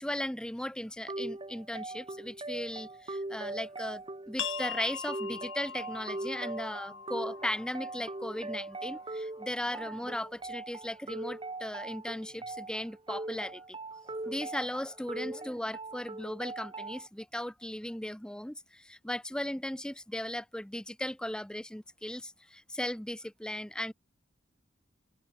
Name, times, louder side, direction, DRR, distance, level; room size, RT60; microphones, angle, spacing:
voice 1, 0.0-13.8 14.1-23.9, left 1 dB, 5° left, 0.6 m, -37 dB
sound 1, 1.1-17.1, right 2 dB, 25° right, 1.2 m, -41 dB
sound 2, 4.4-9.8, left 8 dB, 80° left, 4.3 m, -42 dB
open air
head